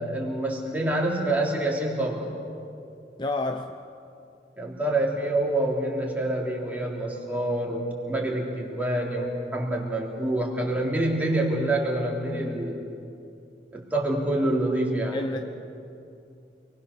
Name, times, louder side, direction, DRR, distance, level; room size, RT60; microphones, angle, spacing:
voice 1, 0.0-2.3 4.6-12.9 13.7-15.2, right 1 dB, 10° right, 3.4 m, -27 dB
voice 2, 3.2-3.8 15.1-15.4, left 2 dB, 25° left, 0.7 m, -29 dB
28.0 x 20.0 x 6.8 m
head